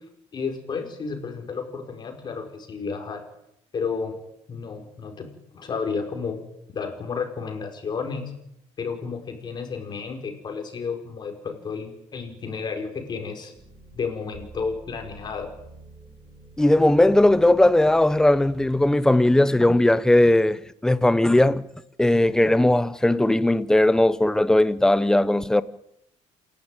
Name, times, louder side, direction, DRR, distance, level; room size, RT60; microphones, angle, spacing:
voice 1, 0.3-3.2 3.7-4.1 4.5-6.4 6.7-8.3 8.8-13.5 13.9-15.5, left 5 dB, 35° left, 4.9 m, -32 dB
sound 1, 13.5-18.9, right 3 dB, 10° right, 4.8 m, -48 dB
voice 2, 16.6-21.6 22.0-25.6, left 1 dB, 5° left, 0.8 m, -18 dB
28.0 x 12.0 x 9.1 m
cardioid pair, 145°, 12 cm